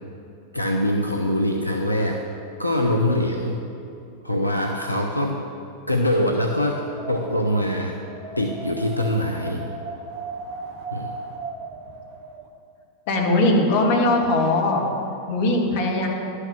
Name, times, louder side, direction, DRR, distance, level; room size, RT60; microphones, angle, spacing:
voice 1, 0.5-2.2 2.6-3.6 4.2-5.4 5.9-6.8 7.1-8.0 8.4-9.6 10.9-11.1, left 1 dB, 90° left, 2 dB, 0.6 m, -23 dB
Wind, 6.5-12.5, right 3 dB, 40° right, 1.0 m, -37 dB
voice 2, 13.1-14.8 15.3-16.1, left 2 dB, 50° left, 0 dB, 1.8 m, -20 dB
11.5 x 6.5 x 6.2 m, 2.6 s
figure-of-eight pair, 90°, 0 cm